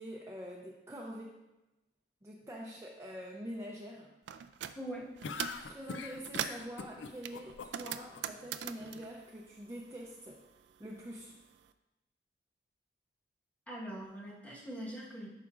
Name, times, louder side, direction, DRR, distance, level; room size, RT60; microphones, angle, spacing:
voice 1, 0.0-1.4 2.2-4.1 5.6-10.4 10.8-11.4, equal, 15° right, -3 dB, 0.5 m, -45 dB
sound 1, 4.3-4.8 5.2-5.7 6.0-6.7 7.2-10.2 10.4-11.6, right 9 dB, 65° right, 0.3 m, -41 dB
voice 2, 4.7-5.1 13.7-15.3, right 1 dB, 5° left, -4 dB, 1.2 m, -42 dB
sound 2, 5.2-8.2, left 5 dB, 75° left, 0.4 m, -43 dB
11.5 x 5.0 x 2.5 m, 1.0 s
head